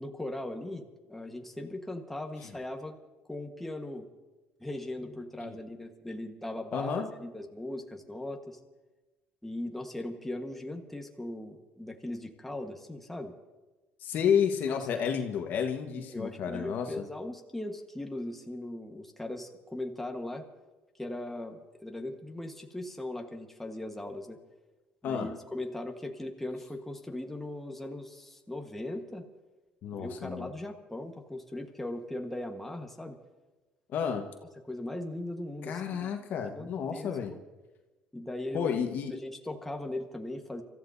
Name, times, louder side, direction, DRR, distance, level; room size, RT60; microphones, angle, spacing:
voice 1, 0.0-2.9 3.3-4.1 4.6-8.6 9.4-13.3 14.7-14.8 16.0-20.5 21.0-24.4 25.0-29.3 29.9-33.2 34.7-37.4 38.1-38.7 39.1-40.6, left 1 dB, 5° left, 3 dB, 1.4 m, -39 dB
voice 2, 6.7-7.1 14.0-17.0 25.0-25.3 29.8-30.5 33.9-34.3 35.6-37.3 38.5-39.1, left 7 dB, 65° left, 4 dB, 1.4 m, -31 dB
28.5 x 14.0 x 2.7 m, 1.2 s
cardioid pair, 100°, 4 cm